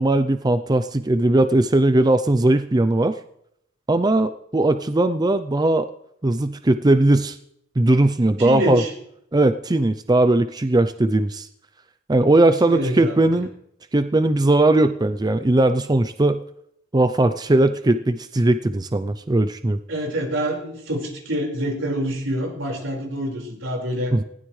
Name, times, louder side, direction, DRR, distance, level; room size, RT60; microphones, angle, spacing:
voice 1, 0.0-3.2 3.9-5.9 6.2-7.4 7.8-8.8 9.3-11.5 12.1-13.5 13.9-16.4 16.9-19.8 24.1-24.2, right 2 dB, 20° right, 10 dB, 0.5 m, -19 dB
voice 2, 8.4-8.9 12.6-13.3 19.9-24.1, equal, 75° right, 0 dB, 5.0 m, -26 dB
20.0 x 16.0 x 3.2 m, 0.74 s
head